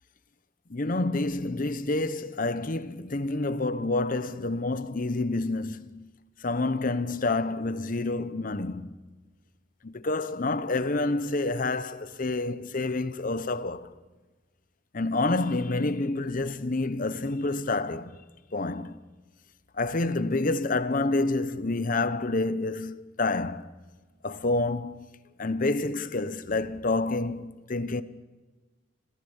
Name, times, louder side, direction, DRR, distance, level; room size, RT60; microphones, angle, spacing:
voice 1, 0.7-6.1 6.4-8.9 9.8-13.9 14.9-18.1 18.5-18.9 19.8-23.7 24.2-25.1 25.4-28.0, left 2 dB, 45° left, 0.9 m, -28 dB
26.0 x 15.5 x 7.2 m
head